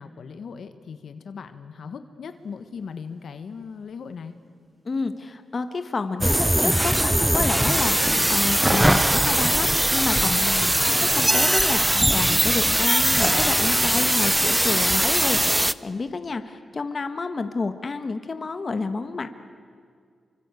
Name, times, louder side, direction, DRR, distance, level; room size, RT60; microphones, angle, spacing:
voice 1, 0.0-4.3 10.2-10.8, left 6 dB, 70° left, 9 dB, 1.5 m, -37 dB
sound 1, 2.3-3.2 3.5-3.9 4.6-4.7 7.5-7.6 8.1-8.6 9.0-13.7, right 1 dB, 25° right, 7.9 m, -52 dB
voice 2, 4.8-10.4 11.1-19.3, left 4 dB, 40° left, 9 dB, 1.4 m, -29 dB
sound 2, 6.2-15.7, right 1 dB, 5° right, 0.6 m, -20 dB
28.0 x 24.5 x 8.4 m, 2.1 s
cardioid pair, 100°, 0 cm